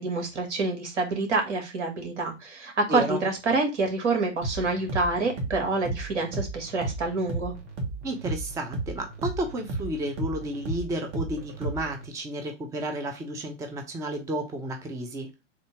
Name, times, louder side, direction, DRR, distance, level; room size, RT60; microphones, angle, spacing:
voice 1, 0.0-7.5, right 3 dB, 70° right, 1.7 m, -27 dB
voice 2, 2.9-3.2 8.0-15.3, right 1 dB, 10° right, 0.5 m, -32 dB
sound 1, 4.4-12.1, right 2 dB, 35° right, 1.3 m, -34 dB
3.7 x 2.7 x 4.6 m
hypercardioid pair, 100°, 36 cm